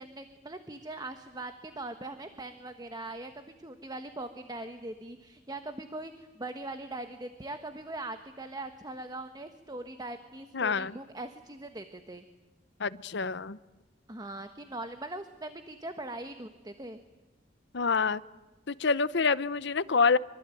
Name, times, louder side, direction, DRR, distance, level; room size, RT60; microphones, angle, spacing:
voice 1, 0.0-12.2 14.1-17.0, right 2 dB, 20° right, 8 dB, 1.3 m, -41 dB
voice 2, 10.5-11.0 12.8-13.6 17.7-18.2 18.7-20.2, left 4 dB, 65° left, 16 dB, 0.9 m, -27 dB
26.0 x 23.5 x 9.2 m, 1.2 s
head